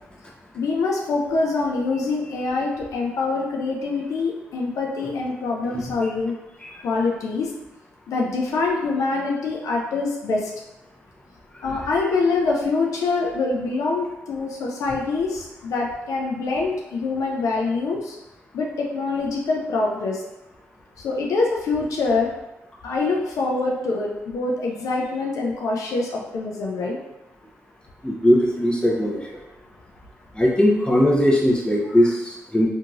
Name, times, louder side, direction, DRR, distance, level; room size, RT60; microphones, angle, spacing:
voice 1, 0.5-6.4 6.8-7.5 8.1-10.5 11.6-18.2 18.5-20.2 21.0-22.3 22.8-27.0, left 3 dB, 70° left, -1 dB, 0.4 m, -25 dB
voice 2, 28.0-29.4 30.3-32.7, equal, 15° left, -2 dB, 0.8 m, -20 dB
2.9 x 2.6 x 2.4 m, 0.98 s
supercardioid pair, 50°, 6 cm